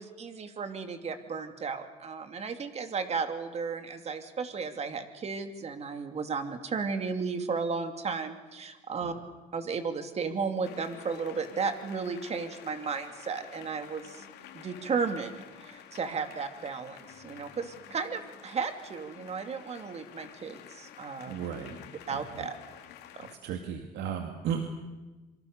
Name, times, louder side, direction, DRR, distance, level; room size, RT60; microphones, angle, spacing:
voice 1, 0.0-9.1 9.5-14.2 14.5-21.4 22.1-22.5 23.1-23.3, right 5 dB, 40° right, 7 dB, 2.8 m, -34 dB
sound 1, 10.6-23.4, left 10 dB, 80° left, 2.9 m, -50 dB
voice 2, 21.3-21.8 22.1-22.4 23.2-24.6, right 8 dB, 80° right, 5 dB, 2.3 m, -35 dB
27.0 x 24.5 x 6.8 m, 1.2 s
cardioid pair, 110°, 17 cm